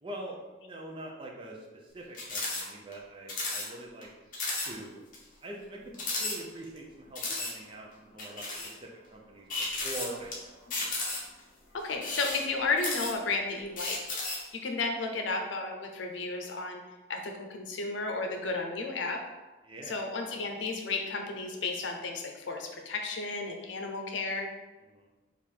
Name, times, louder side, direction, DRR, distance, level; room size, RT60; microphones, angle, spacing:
voice 1, 0.0-4.1 4.6-5.1 5.4-10.6 19.6-20.0 24.9-25.1, right 1 dB, 30° right, -1 dB, 0.5 m, -44 dB
sound 1, 2.1-2.6 2.9-3.0 3.3-3.7 4.0-4.1 4.3-4.7 5.1-5.2 5.9-6.8 7.2-7.5 8.2-8.7 9.5-10.3 10.7-11.4 11.9-13.3 13.8-14.5, left 2 dB, 45° left, 0.9 m, -34 dB
voice 2, 11.7-14.0 14.6-16.8 17.1-19.2 19.9-24.5, left 3 dB, 90° left, 3 dB, 0.6 m, -33 dB
3.5 x 2.5 x 4.5 m, 1.2 s
head